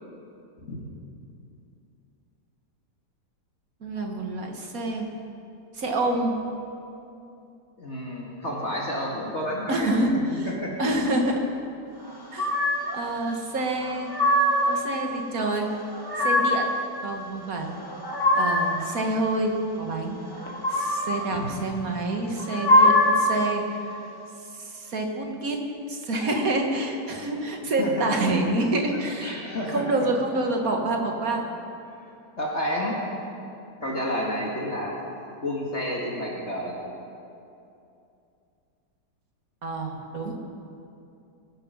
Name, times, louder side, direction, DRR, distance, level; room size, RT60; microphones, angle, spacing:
voice 1, 3.8-5.1 5.7-6.3 9.7-10.5 10.8-11.4 12.3-12.6 12.9-14.1 14.7-15.7 16.2-16.7 17.0-17.7 18.3-20.2 20.7-23.6 24.5-25.6 25.9-29.4 29.7-31.5 39.6-40.4, right 2 dB, 55° right, 2 dB, 2.0 m, -27 dB
voice 2, 7.8-9.9 10.5-10.8 21.3-21.6 27.8-28.1 28.9-29.9 30.8-30.9 32.4-33.0 33.8-35.0 35.4-36.8, equal, 40° left, -3 dB, 2.1 m, -30 dB
sound 1, 12.4-13.0 13.8-14.8 15.8-16.8 17.7-18.8 20.4-21.2 22.3-23.4, left 1 dB, 15° left, 1.5 m, -22 dB
23.0 x 9.7 x 5.6 m, 2.7 s
omnidirectional pair, 1.9 m